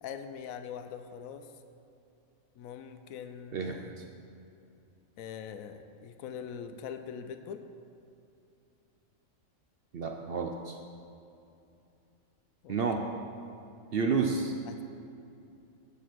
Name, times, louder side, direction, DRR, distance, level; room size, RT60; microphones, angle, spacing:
voice 1, 0.0-1.5 2.6-3.9 5.2-7.6 12.6-12.8 14.7-14.8, left 7 dB, 85° left, 9 dB, 1.0 m, -42 dB
voice 2, 3.5-4.0 9.9-10.8 12.7-13.0 13.9-14.5, right 5 dB, 65° right, 3 dB, 0.6 m, -30 dB
7.3 x 7.0 x 6.0 m, 2.7 s
omnidirectional pair, 1.4 m